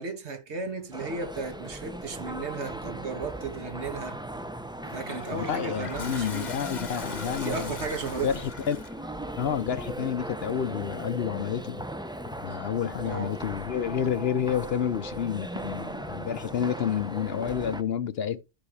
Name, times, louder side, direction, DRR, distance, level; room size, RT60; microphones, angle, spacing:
voice 1, 0.0-4.2 4.9-6.5 7.4-8.3 13.0-13.3, right 4 dB, 60° right, 1.6 m, -34 dB
sound 1, 0.9-17.8, right 1 dB, 5° right, 0.3 m, -38 dB
Toilet flush, 4.8-9.1, left 5 dB, 40° left, 1.0 m, -42 dB
voice 2, 5.3-7.7 8.2-8.8 9.4-11.8 12.4-18.4, left 8 dB, 60° left, 0.8 m, -29 dB
sound 2, 12.6-17.8, right 3 dB, 90° right, 4.6 m, -60 dB
13.5 x 5.4 x 3.4 m
omnidirectional pair, 1.3 m